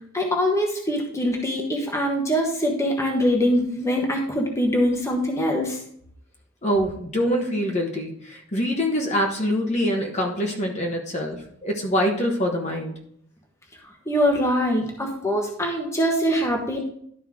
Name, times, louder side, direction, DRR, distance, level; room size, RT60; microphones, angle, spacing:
voice 1, 0.1-5.8 14.1-16.8, equal, 15° left, 1 dB, 1.2 m, -23 dB
voice 2, 6.6-12.9, equal, 35° left, 1 dB, 1.1 m, -25 dB
12.0 x 4.4 x 3.6 m, 0.65 s
head